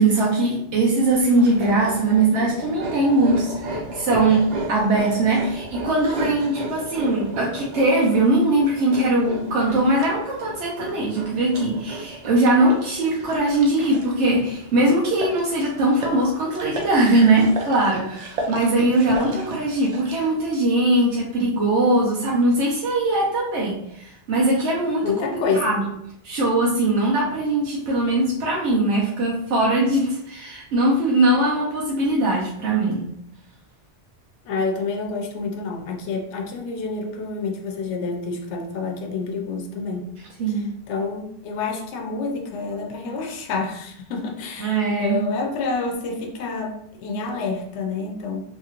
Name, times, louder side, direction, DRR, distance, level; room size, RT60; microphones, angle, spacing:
voice 1, 0.0-4.4 4.7-25.3 25.5-25.9 26.2-33.1 40.4-40.7 44.6-45.2, right 2 dB, 90° right, -4 dB, 1.0 m, -21 dB
sound 1, 1.1-20.3, right 2 dB, 50° right, 0.6 m, -34 dB
voice 2, 25.0-25.8 34.4-40.1 40.5-48.4, left 4 dB, 85° left, 2 dB, 0.9 m, -28 dB
2.9 x 2.4 x 2.9 m, 0.72 s
omnidirectional pair, 1.1 m